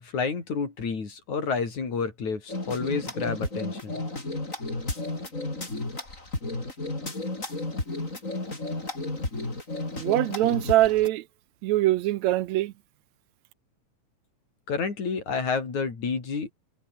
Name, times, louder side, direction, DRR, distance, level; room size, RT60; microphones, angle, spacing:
voice 1, 0.0-4.0 14.7-16.5, left 5 dB, 75° left, 5.9 m, -30 dB
sound 1, 2.5-11.1, left 2 dB, 25° left, 5.7 m, -32 dB
voice 2, 10.0-11.3 11.6-12.7, right 15 dB, 80° right, 1.9 m, -23 dB
omnidirectional pair, 3.3 m